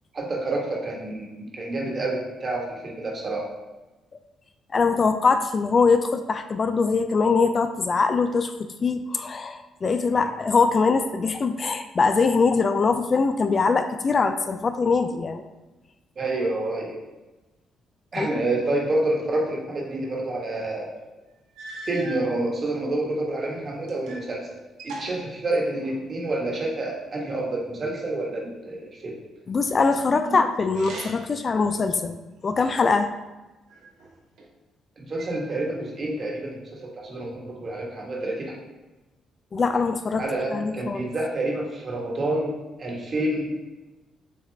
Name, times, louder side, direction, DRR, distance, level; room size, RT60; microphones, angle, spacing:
voice 1, 0.1-3.5 16.2-16.9 18.1-20.9 21.9-24.5 24.8-29.1 30.2-30.3 35.0-38.5 40.2-42.5 42.8-43.5, right 2 dB, 40° right, -2 dB, 1.3 m, -28 dB
voice 2, 4.7-8.5 8.8-15.4 18.2-18.3 29.5-33.1 39.5-40.3 40.5-41.1, left 4 dB, 40° left, 8 dB, 0.3 m, -22 dB
sound 1, 21.0-21.1 21.5-22.3 23.1-24.3 24.6-26.1 30.7-31.4 32.0-33.0 33.7-34.5 35.2-35.9, right 2 dB, 80° right, 0.8 m, -41 dB
6.6 x 2.4 x 3.3 m, 1.1 s
cardioid pair, 90°, 0 cm